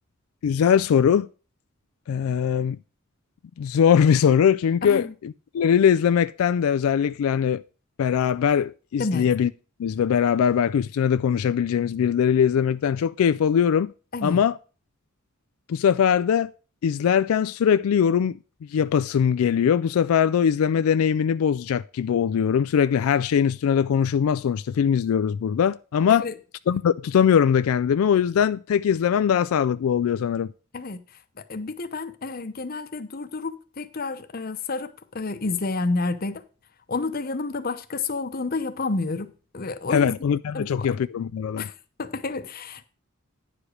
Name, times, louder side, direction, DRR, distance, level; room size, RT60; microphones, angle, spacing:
voice 1, 0.4-1.3 2.1-2.8 3.6-7.6 8.0-9.5 9.8-13.9 14.2-14.6 15.7-16.5 16.8-18.4 18.7-26.3 26.7-30.5 39.9-41.7, left 8 dB, 90° left, 0.3 m, -21 dB
voice 2, 4.8-5.1 9.0-9.3 14.1-14.4 26.1-26.3 30.7-31.0 31.4-36.4 36.9-40.2 40.5-40.9 41.6-41.7 42.0-42.8, left 3 dB, 45° left, 0.8 m, -30 dB
9.9 x 4.9 x 6.4 m
head